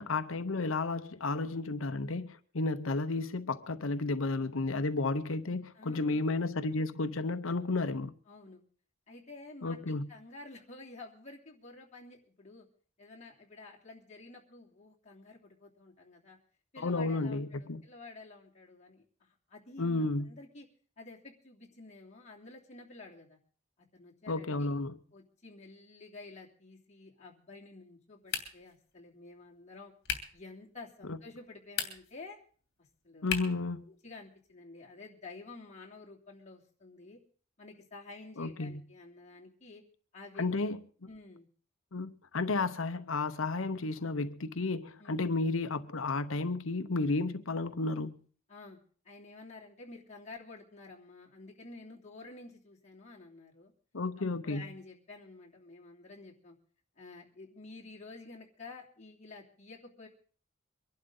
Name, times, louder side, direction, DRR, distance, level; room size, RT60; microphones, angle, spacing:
voice 1, 0.0-8.1 9.6-10.1 16.8-17.8 19.8-20.3 24.3-25.0 31.1-31.2 33.2-33.9 38.4-38.8 40.4-40.8 41.9-48.2 53.9-54.6, left 3 dB, 80° left, 0.9 m, -32 dB
voice 2, 5.7-6.2 8.3-8.6 9.1-12.7 13.0-16.4 16.7-20.7 21.0-23.4 23.9-24.7 25.1-29.9 30.3-32.4 33.0-33.3 33.9-37.2 37.6-39.8 40.1-40.5 41.1-41.5 45.0-45.2 48.5-48.8 49.0-53.7 54.4-56.6 57.0-60.1, left 3 dB, 35° left, 3.0 m, -50 dB
sound 1, 28.3-28.8 30.0-30.4 31.6-32.2 33.3-33.7, left 7 dB, 60° left, 2.7 m, -36 dB
23.5 x 11.5 x 3.8 m
head